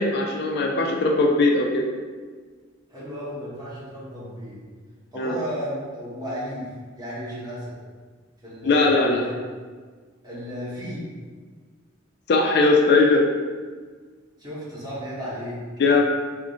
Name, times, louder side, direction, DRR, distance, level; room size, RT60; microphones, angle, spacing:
voice 1, 0.0-1.8 5.2-5.3 8.6-9.2 12.3-13.3 15.8-16.0, left 3 dB, 55° left, 1 dB, 0.4 m, -19 dB
voice 2, 2.9-4.6 5.1-7.8 8.4-9.3 10.2-11.1 14.4-15.6, equal, 20° right, -9 dB, 1.2 m, -34 dB
3.7 x 2.5 x 3.6 m, 1.5 s
head